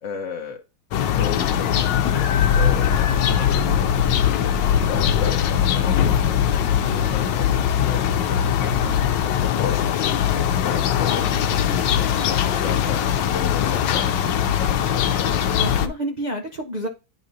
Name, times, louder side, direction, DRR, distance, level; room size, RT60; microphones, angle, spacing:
voice 1, 0.0-0.6 1.2-2.3 2.6-6.5 6.9-7.5 7.7-8.8 9.2-11.2 11.7-15.0, left 6 dB, 55° left, 2 dB, 1.0 m, -35 dB
sound 1, 0.9-15.9, left 9 dB, 90° left, 1.4 m, -21 dB
voice 2, 11.4-11.7 12.4-12.5 15.6-16.9, right 1 dB, 50° right, 3 dB, 0.5 m, -30 dB
10.0 x 4.1 x 2.7 m, 0.29 s
omnidirectional pair, 1.9 m